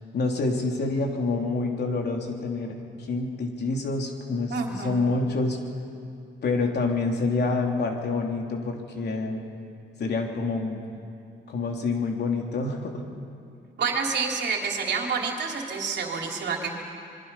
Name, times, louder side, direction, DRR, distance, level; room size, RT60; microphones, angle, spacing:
voice 1, 0.1-5.6 6.4-9.4 10.0-10.8 11.5-13.0, left 3 dB, 60° left, 2 dB, 3.2 m, -27 dB
voice 2, 4.5-5.0 13.8-16.7, right 5 dB, 60° right, 1 dB, 3.4 m, -28 dB
26.5 x 22.5 x 5.7 m, 2.4 s
cardioid pair, 90°, 20 cm